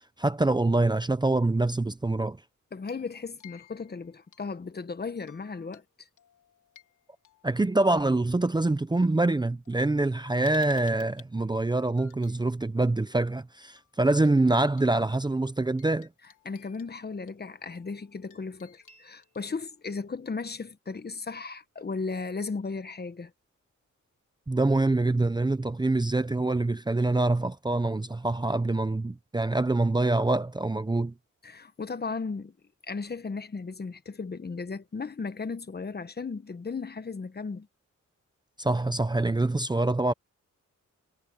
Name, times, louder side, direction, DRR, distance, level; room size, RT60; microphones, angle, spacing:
voice 1, 0.2-2.4 7.4-16.1 24.5-31.1 38.6-40.1, right 2 dB, 15° right, 0.8 m, -25 dB
voice 2, 2.7-6.1 16.4-23.3 31.4-32.5 32.9-37.7, left 4 dB, 30° left, 1.2 m, -36 dB
sound 1, 2.8-4.7 5.2-5.8 6.2-8.4 9.2-9.3 9.6-12.4 13.8-13.9 14.2-14.3 14.7-20.1, left 8 dB, 80° left, 4.0 m, -58 dB
cardioid pair, 105°, 31 cm